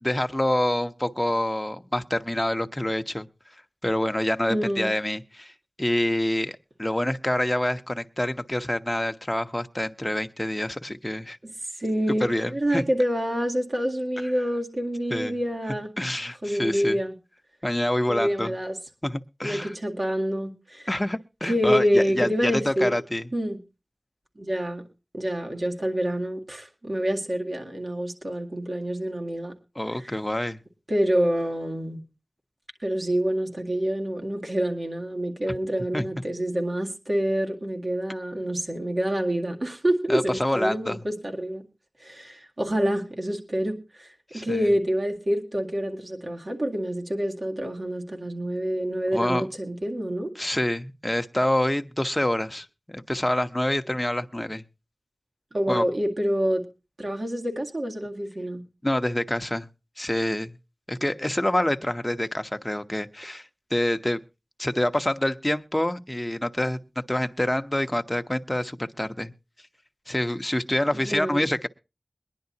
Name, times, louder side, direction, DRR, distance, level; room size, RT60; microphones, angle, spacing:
voice 1, 0.0-3.3 3.8-5.5 5.8-11.4 12.2-12.8 15.1-15.4 16.0-17.0 17.6-18.5 19.0-19.7 20.9-23.3 29.8-30.6 35.9-36.1 40.1-41.0 44.3-44.6 49.1-49.4 50.4-54.6 55.7-55.8 58.8-59.7 60.0-60.6 60.9-64.2 64.6-66.8 67.1-69.3 70.1-71.7, left 1 dB, 20° left, 0.8 m, -26 dB
voice 2, 4.5-4.9 11.8-15.9 16.4-17.1 18.1-18.8 19.4-20.9 21.4-22.9 23.3-23.6 24.4-24.8 25.1-29.5 30.0-30.2 30.9-32.0 32.8-41.6 42.0-50.3 55.5-56.7 57.0-58.6 71.0-71.4, equal, 60° right, 2.0 m, -27 dB
22.0 x 10.5 x 2.7 m
wide cardioid pair, 50°, 0 cm